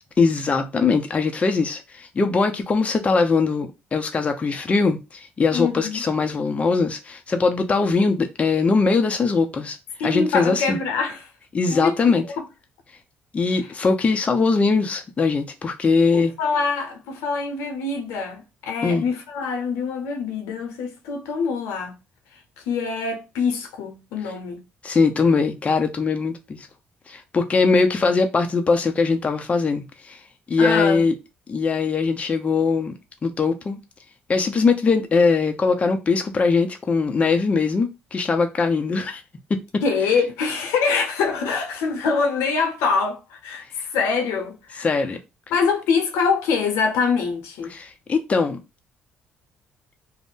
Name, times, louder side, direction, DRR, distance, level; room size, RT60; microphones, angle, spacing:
voice 1, 0.2-9.8 10.0-10.8 11.5-12.2 13.3-16.3 18.8-19.0 24.8-26.4 27.1-30.2 30.5-31.1 31.5-32.9 33.2-33.8 34.3-39.2 39.5-39.6 44.8-45.2 47.7-48.6, left 4 dB, 30° left, 0.5 m, -21 dB
voice 2, 5.5-6.0 10.0-11.3 11.7-11.9 12.4-12.5 13.5-13.7 16.1-21.9 22.7-24.6 30.6-31.0 39.8-44.9 45.5-47.8, left 5 dB, 85° left, 0.7 m, -24 dB
2.5 x 2.1 x 3.6 m
supercardioid pair, 80°, 4 cm